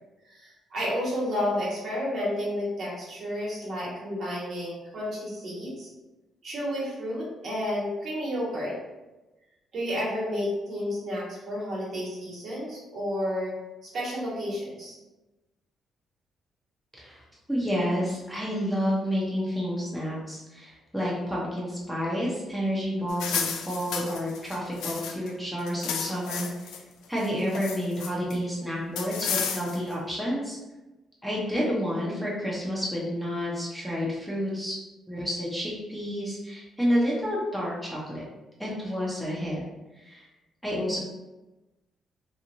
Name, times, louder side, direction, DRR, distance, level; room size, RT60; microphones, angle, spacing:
voice 1, 0.3-5.9 6.4-8.7 9.7-13.5 13.8-14.9, equal, 60° right, -6 dB, 1.3 m, -31 dB
voice 2, 17.5-26.7 27.1-30.6 31.2-34.8 35.1-38.3 38.6-39.6 39.9-40.3 40.6-41.0, equal, ahead, -6 dB, 0.8 m, -30 dB
sound 1, 23.1-25.3 25.6-26.8 27.2-28.3 29.0-29.9, left 6 dB, 90° left, 0.3 m, -32 dB
2.9 x 2.5 x 2.6 m, 1.1 s
cardioid pair, 90°, 0 cm